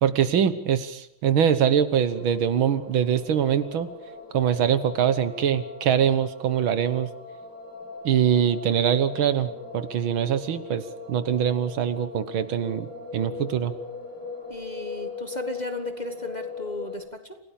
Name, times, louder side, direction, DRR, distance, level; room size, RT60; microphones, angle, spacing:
voice 1, 0.0-3.9 4.3-7.1 8.0-10.8 11.1-12.9 13.1-13.7, right 9 dB, 75° right, 13 dB, 2.0 m, -23 dB
sound 1, 1.9-17.0, left 4 dB, 50° left, 7.6 m, -39 dB
voice 2, 14.5-17.4, left 1 dB, 25° left, 7 dB, 1.4 m, -35 dB
28.0 x 17.0 x 7.2 m, 0.77 s
omnidirectional pair, 2.3 m